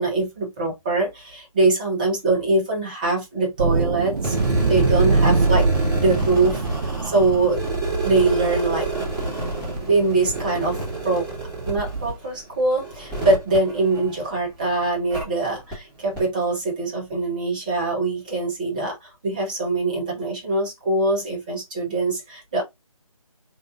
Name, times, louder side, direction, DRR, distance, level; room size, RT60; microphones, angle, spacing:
voice 1, 0.0-4.4 4.7-5.7 6.0-6.6 7.0-7.6 8.0-8.9 9.8-11.3 11.7-22.6, right 3 dB, 15° right, 0.7 m, -23 dB
sound 1, 3.6-12.1, right 4 dB, 80° right, 0.5 m, -25 dB
sound 2, 4.2-14.5 15.1-15.2 15.7-15.8 16.1-16.2, right 2 dB, 5° left, 1.3 m, -29 dB
3.4 x 2.6 x 2.5 m
figure-of-eight pair, 155°, 19 cm